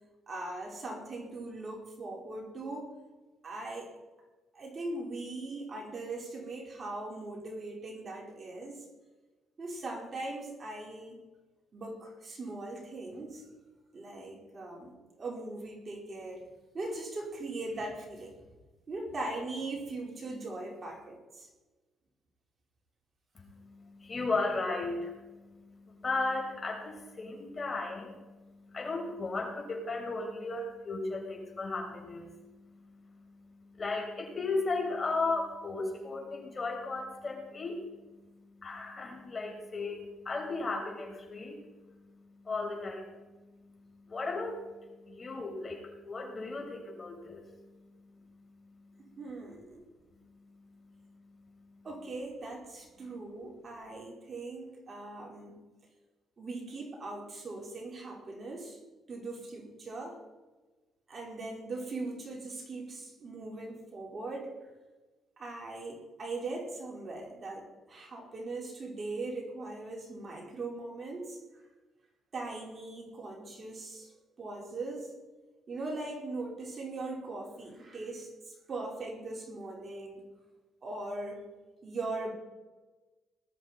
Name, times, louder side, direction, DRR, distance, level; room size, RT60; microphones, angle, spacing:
voice 1, 0.3-2.9 3.4-3.9 4.5-8.9 9.6-11.3 11.7-13.4 13.9-16.4 16.7-18.4 18.9-21.5 49.0-49.8 51.8-55.6 56.4-58.8 59.1-60.2 61.1-64.5 65.4-71.4 72.3-74.1 74.4-75.1 75.7-80.2 80.8-81.4 81.8-82.3, right 2 dB, 40° right, -1 dB, 4.8 m, -40 dB
voice 2, 23.3-49.2 50.1-51.9, left 3 dB, 35° left, 1 dB, 5.3 m, -37 dB
20.0 x 13.0 x 4.5 m, 1.2 s
cardioid pair, 90°, 0 cm